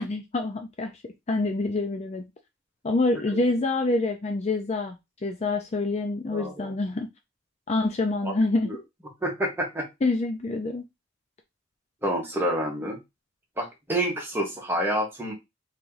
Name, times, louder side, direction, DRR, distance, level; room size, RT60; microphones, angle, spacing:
voice 1, 0.0-2.2 2.8-7.1 7.7-8.7 10.0-10.8, left 2 dB, 30° left, 5 dB, 0.4 m, -26 dB
voice 2, 6.3-6.7 8.2-8.3 8.6-8.8 9.2-9.9 12.0-13.0 13.6-15.3, right 1 dB, 10° right, -2 dB, 1.2 m, -28 dB
3.0 x 2.9 x 3.8 m, 0.21 s
head